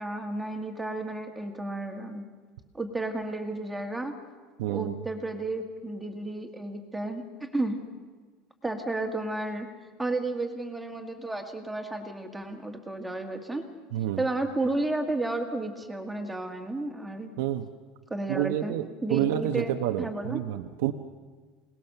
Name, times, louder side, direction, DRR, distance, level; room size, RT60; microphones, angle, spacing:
voice 1, 0.0-2.2 2.7-4.1 4.7-7.8 8.6-9.7 10.0-13.6 14.2-17.3 18.1-18.8 19.0-20.4, right 2 dB, 5° right, 4 dB, 2.0 m, -32 dB
voice 2, 4.6-5.0 13.9-14.2 17.4-17.7 18.3-20.9, right 13 dB, 80° right, 6 dB, 1.0 m, -29 dB
27.0 x 19.5 x 6.8 m, 1.4 s
cardioid pair, 165°, 0 cm